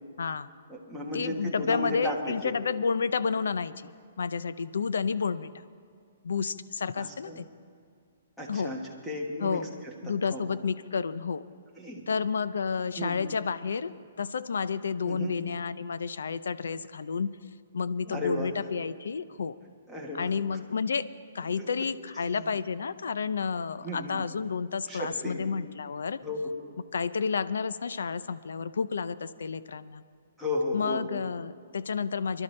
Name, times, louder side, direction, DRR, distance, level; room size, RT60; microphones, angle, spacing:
voice 1, 0.2-0.5 1.1-3.9 4.2-5.5 6.2-7.4 8.5-8.7 9.4-9.7 10.0-11.5 12.1-13.9 14.2-17.3 17.7-19.5 20.1-21.1 21.3-26.2 26.9-30.0 30.7-32.4, left 5 dB, 90° left, 15 dB, 0.5 m, -30 dB
voice 2, 0.7-2.5 6.9-7.4 8.4-9.9 10.3-10.6 11.8-12.1 13.0-13.3 15.1-15.4 18.1-18.5 19.9-20.3 21.6-21.7 22.2-22.5 23.8-24.2 24.9-25.4 26.2-26.5 30.4-31.2, left 1 dB, ahead, -2 dB, 1.3 m, -34 dB
23.0 x 11.5 x 3.3 m, 2.3 s
hypercardioid pair, 170°, 0 cm